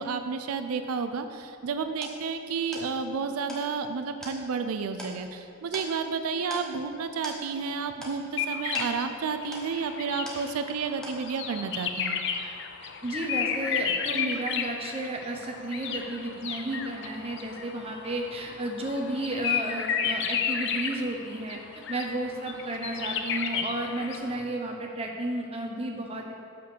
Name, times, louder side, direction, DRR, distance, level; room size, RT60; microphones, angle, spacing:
voice 1, 0.0-12.2, right 5 dB, 90° right, 8 dB, 0.4 m, -31 dB
sound 1, 1.3-10.8 11.0-11.6, equal, 5° left, 1.1 m, -44 dB
sound 2, 8.4-24.4, left 7 dB, 55° left, 0.5 m, -33 dB
voice 2, 13.0-21.6 21.9-26.3, right 1 dB, 30° right, 1 dB, 0.8 m, -32 dB
5.6 x 5.3 x 6.6 m, 2.6 s
head